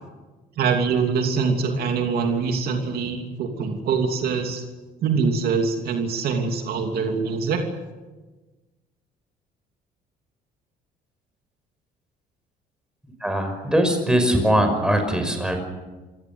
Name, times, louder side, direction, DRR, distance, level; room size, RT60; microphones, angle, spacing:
voice 1, 0.6-4.6 5.0-7.6, right 5 dB, 65° right, 4 dB, 3.0 m, -24 dB
voice 2, 13.2-15.6, equal, 5° right, 5 dB, 5.6 m, -21 dB
26.5 x 16.5 x 8.2 m, 1.2 s
cardioid pair, 110°, 17 cm